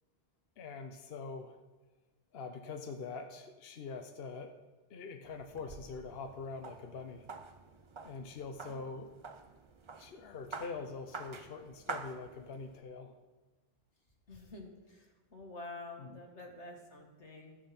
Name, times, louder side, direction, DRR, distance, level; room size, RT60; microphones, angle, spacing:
voice 1, 0.6-1.6 2.3-4.5 4.9-7.3 8.0-9.1 9.9-13.2 16.0-16.2, left 4 dB, 60° left, 6 dB, 0.9 m, -44 dB
sound 1, 5.2-12.8, right 4 dB, 35° right, 0.5 m, -48 dB
voice 2, 14.3-17.6, left 2 dB, 90° left, 1 dB, 2.1 m, -49 dB
13.5 x 10.0 x 4.2 m, 1.2 s
omnidirectional pair, 1.1 m